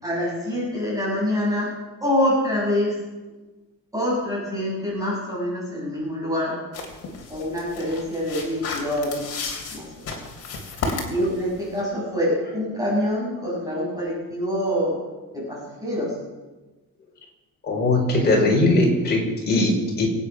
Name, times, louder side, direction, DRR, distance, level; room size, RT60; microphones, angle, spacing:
voice 1, 0.0-1.7 2.0-2.9 3.9-6.6 7.3-9.3 9.7-9.9 11.1-15.0 15.3-16.1, left 1 dB, 10° right, -5 dB, 6.9 m, -25 dB
sound 1, 6.7-11.8, left 4 dB, 45° left, 3.3 m, -33 dB
voice 2, 17.6-20.1, left 2 dB, 30° left, -2 dB, 4.9 m, -20 dB
24.0 x 9.1 x 5.7 m, 1.2 s
cardioid pair, 175°, 34 cm